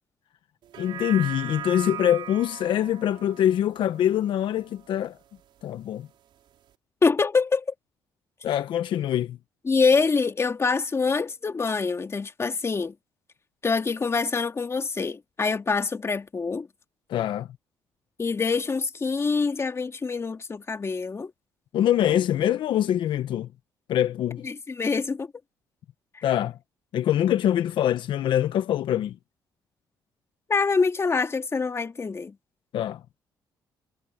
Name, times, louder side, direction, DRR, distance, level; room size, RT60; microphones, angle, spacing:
sound 1, 0.6-5.2 5.6-5.7, right 11 dB, 70° right, 5.4 m, -39 dB
voice 1, 0.8-5.2 5.6-6.1 8.4-9.4 17.1-17.5 21.7-23.5 23.9-24.5 26.2-26.6 26.9-29.2 32.7-33.0, left 11 dB, 70° left, 0.9 m, -24 dB
voice 2, 7.0-7.6 9.6-12.9 13.6-16.7 18.2-21.3 24.4-25.3 26.1-26.2 30.5-32.4, left 4 dB, 30° left, 2.4 m, -25 dB
cardioid pair, 80°, 9 cm